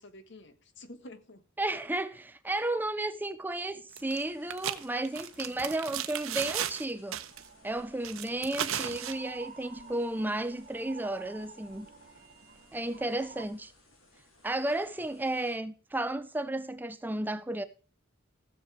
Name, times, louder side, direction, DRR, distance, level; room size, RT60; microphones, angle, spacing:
voice 1, 0.0-1.5 5.4-5.8 12.8-13.5, left 1 dB, 55° left, 1.3 m, -51 dB
voice 2, 1.6-7.2 7.6-11.9 12.7-13.7 14.4-17.6, right 1 dB, 10° right, 0.5 m, -33 dB
sound 1, 4.0-15.6, left 2 dB, 80° left, 3.3 m, -62 dB
sound 2, 4.0-4.2 4.5-6.9 7.1-7.5 8.0-9.2, right 10 dB, 80° right, 0.9 m, -35 dB
sound 3, 7.3-13.5, right 5 dB, 45° right, 1.9 m, -51 dB
16.0 x 6.8 x 4.8 m
head